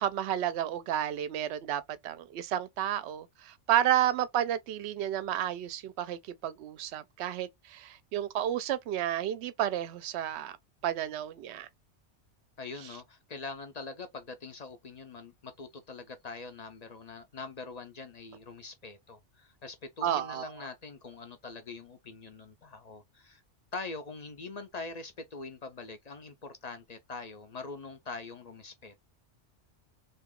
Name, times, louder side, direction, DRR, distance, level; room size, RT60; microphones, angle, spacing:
voice 1, 0.0-10.6 10.8-11.7 20.0-20.5, right 11 dB, 70° right, 0.8 m, -31 dB
voice 2, 12.6-23.4 23.7-29.0, left 3 dB, 45° left, 0.6 m, -43 dB
2.9 x 2.6 x 3.6 m
omnidirectional pair, 1.2 m